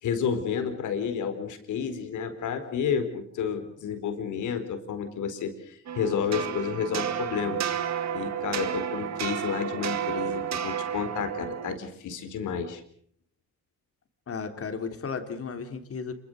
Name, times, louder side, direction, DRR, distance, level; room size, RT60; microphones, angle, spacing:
voice 1, 0.0-7.6 8.1-12.8, left 7 dB, 80° left, 9 dB, 4.4 m, -31 dB
sound 1, 5.9-11.8, right 8 dB, 60° right, 2.2 m, -31 dB
voice 2, 14.3-16.1, left 5 dB, 50° left, 7 dB, 3.7 m, -34 dB
27.5 x 23.5 x 6.6 m, 0.63 s
cardioid pair, 90°, 30 cm